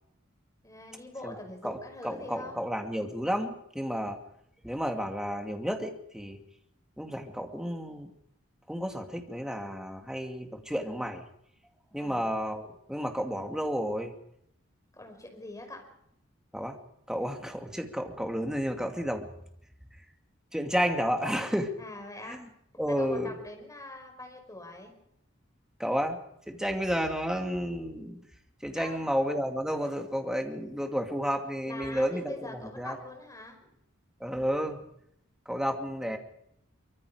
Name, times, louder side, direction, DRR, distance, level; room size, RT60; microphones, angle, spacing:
voice 1, 0.6-2.6 11.9-12.3 14.9-15.8 21.8-22.4 22.9-24.9 28.8-29.0 31.6-33.6, left 2 dB, 15° left, 4 dB, 5.4 m, -44 dB
voice 2, 2.0-4.2 4.6-6.4 7.0-8.1 8.7-11.2 11.9-14.1 16.5-16.8 17.1-19.3 20.5-21.7 22.3-22.4 22.8-23.4 25.8-26.2 26.5-28.2 28.6-32.9 34.2-34.8 35.5-36.2, equal, 5° right, 4 dB, 2.5 m, -31 dB
24.5 x 24.0 x 5.1 m, 0.74 s
head